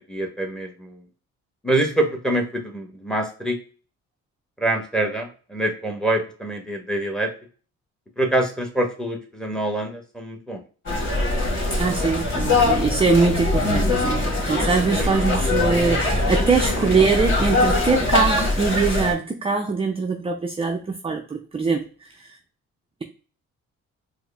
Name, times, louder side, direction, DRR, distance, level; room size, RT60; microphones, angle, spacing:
voice 1, 0.1-1.0 1.6-3.6 4.6-7.3 8.2-10.6 15.0-15.1 16.4-16.5, right 1 dB, ahead, 3 dB, 1.0 m, -25 dB
sound 1, 10.9-19.1, left 2 dB, 40° left, 1.9 m, -22 dB
voice 2, 11.8-22.4, right 4 dB, 20° right, 4 dB, 0.4 m, -22 dB
4.5 x 2.1 x 3.3 m, 0.38 s
cardioid pair, 90°, 30 cm